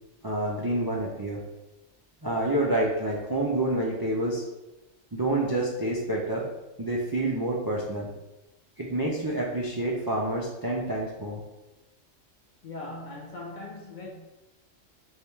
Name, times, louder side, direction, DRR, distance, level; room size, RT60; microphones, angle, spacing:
voice 1, 0.2-1.4 2.2-4.4 5.1-6.5 6.8-8.1 8.8-11.4, right 1 dB, 40° right, -3 dB, 0.3 m, -28 dB
voice 2, 12.6-14.1, left 2 dB, 50° left, -1 dB, 0.6 m, -39 dB
3.6 x 2.7 x 4.4 m, 0.99 s
omnidirectional pair, 1.3 m